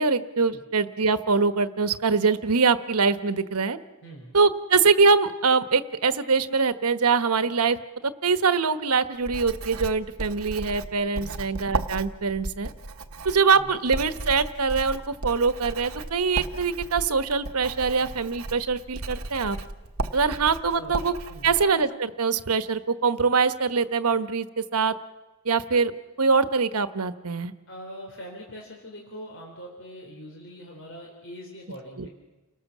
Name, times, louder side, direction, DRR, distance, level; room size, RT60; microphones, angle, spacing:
voice 1, 0.0-3.8 4.3-7.8 8.0-12.7 13.2-19.6 20.1-21.1 21.4-24.5 24.7-24.9 25.4-25.9 26.2-27.5 32.0-32.1, right 5 dB, 85° right, 12 dB, 1.2 m, -23 dB
voice 2, 4.0-4.3 11.1-11.5 13.6-13.7 20.7-21.0 21.3-21.6 27.7-32.1, equal, 60° left, 0 dB, 4.2 m, -42 dB
Writing, 9.2-21.6, right 2 dB, 65° right, 1.3 m, -35 dB
30.0 x 19.0 x 7.4 m, 1.1 s
head